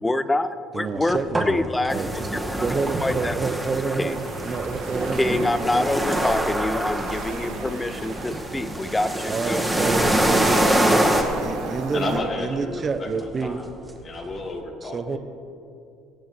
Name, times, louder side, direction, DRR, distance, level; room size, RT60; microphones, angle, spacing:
voice 1, 0.0-2.0 2.3-2.7 3.0-3.4 4.0-4.1 5.1-9.6, left 2 dB, 15° left, 12 dB, 0.7 m, -26 dB
voice 2, 0.7-1.6 1.9-2.1 2.6-6.0 9.3-11.0 11.4-13.6 14.8-15.2, right 4 dB, 35° right, 9 dB, 0.9 m, -28 dB
sound 1, 1.0-14.6, right 1 dB, 20° right, 1.7 m, -38 dB
sound 2, 1.9-11.2, right 1 dB, 5° right, 1.9 m, -25 dB
sound 3, 4.1-12.2, right 4 dB, 85° right, 2.0 m, -35 dB
voice 3, 11.9-13.6 14.0-15.2, left 2 dB, 45° left, 1 dB, 2.4 m, -31 dB
22.5 x 8.5 x 3.3 m, 2.7 s
supercardioid pair, 75°, 0 cm